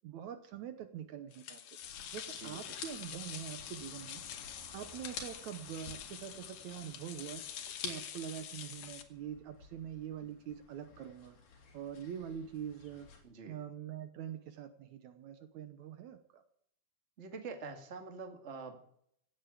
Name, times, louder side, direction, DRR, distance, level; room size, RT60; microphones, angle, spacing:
voice 1, 0.0-1.8 2.1-4.2 4.7-7.5 7.8-11.4 11.7-13.1 13.5-16.4, right 9 dB, 70° right, 9 dB, 2.2 m, -44 dB
sound 1, 1.3-9.0, left 9 dB, 60° left, 2.0 m, -46 dB
sound 2, 1.8-13.2, left 5 dB, 85° left, 4.3 m, -51 dB
voice 2, 2.3-2.8 13.2-13.6 17.2-18.8, right 4 dB, 25° right, 5 dB, 1.7 m, -46 dB
16.5 x 8.7 x 8.3 m, 0.67 s
omnidirectional pair, 3.7 m